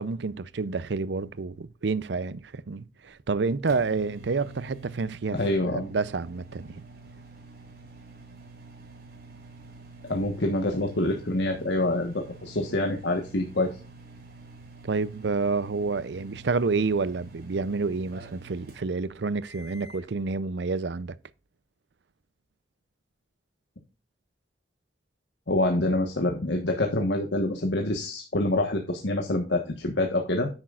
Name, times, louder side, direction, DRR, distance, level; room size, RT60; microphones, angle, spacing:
voice 1, 0.0-5.4 5.7-6.8 14.8-21.2, right 4 dB, 75° right, 0.6 m, -29 dB
sound 1, 3.1-20.1, right 3 dB, 60° right, 3.6 m, -48 dB
voice 2, 5.3-5.9 10.0-13.7 25.5-30.5, left 1 dB, 75° left, 1.4 m, -26 dB
10.5 x 8.9 x 2.5 m
head